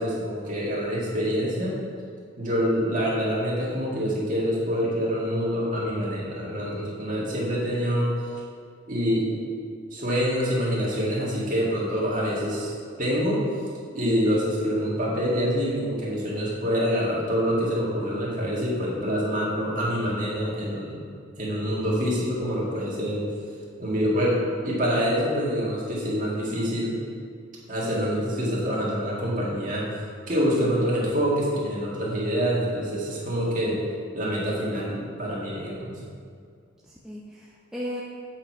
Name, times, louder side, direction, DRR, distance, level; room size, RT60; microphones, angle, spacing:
voice 1, 0.0-1.8 2.4-8.1 8.9-9.4 9.9-12.7 13.0-13.4 13.9-21.0 21.4-23.3 23.8-26.9 27.7-29.8 30.3-33.8 34.1-36.0, equal, 40° right, -6 dB, 1.8 m, -26 dB
voice 2, 14.0-14.3 30.6-30.7 36.9-38.0, equal, 5° right, -6 dB, 0.6 m, -36 dB
8.0 x 4.6 x 4.7 m, 2.2 s
head